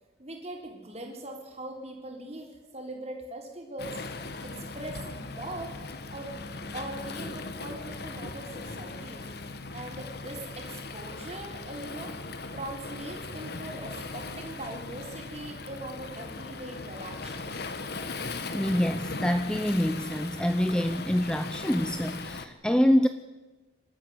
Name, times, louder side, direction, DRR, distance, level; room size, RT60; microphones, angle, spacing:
voice 1, 0.2-2.5 2.7-4.0 4.4-5.8 6.1-6.4 6.7-9.2 9.7-12.2 12.5-17.7, right 1 dB, 35° right, 1 dB, 4.2 m, -41 dB
Waves surf, 3.8-22.5, left 3 dB, 55° left, 1.3 m, -39 dB
voice 2, 18.5-23.1, equal, 5° left, 9 dB, 0.6 m, -26 dB
28.0 x 12.5 x 7.9 m, 1.2 s
head